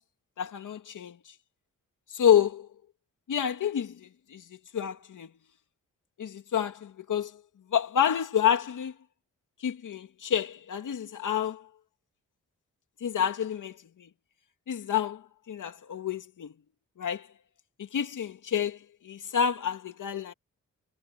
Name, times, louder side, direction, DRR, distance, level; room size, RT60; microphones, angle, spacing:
voice 1, 0.4-1.2 2.1-2.7 3.3-4.4 4.7-5.3 6.2-7.4 7.7-8.9 9.6-11.7 13.0-14.1 14.7-16.5 17.0-17.3 17.8-20.3, left 8 dB, 75° left, 2.5 m, -29 dB
cardioid pair, 80°, 31 cm